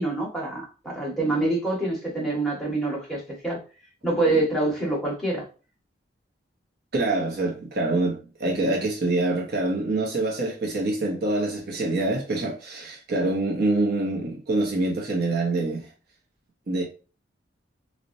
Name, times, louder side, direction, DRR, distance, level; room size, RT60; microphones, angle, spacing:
voice 1, 0.0-3.6 4.0-5.4, right 2 dB, ahead, 1.2 m, -26 dB
voice 2, 6.9-15.9 16.7-16.8, right 2 dB, 55° right, 0.7 m, -25 dB
4.1 x 2.1 x 2.6 m
head